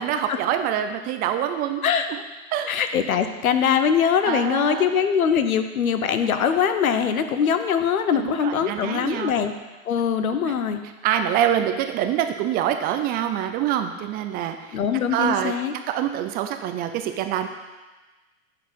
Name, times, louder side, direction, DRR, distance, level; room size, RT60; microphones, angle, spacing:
voice 1, 0.0-1.8 2.5-2.7 4.3-4.9 8.1-9.3 10.4-10.5 11.0-14.8 15.1-15.5 15.9-17.5, right 10 dB, 25° right, 7 dB, 0.4 m, -25 dB
voice 2, 2.7-9.5 9.9-10.8 14.7-15.7, left 7 dB, 90° left, 9 dB, 0.9 m, -22 dB
10.5 x 4.8 x 5.1 m, 1.2 s
hypercardioid pair, 115°, 41 cm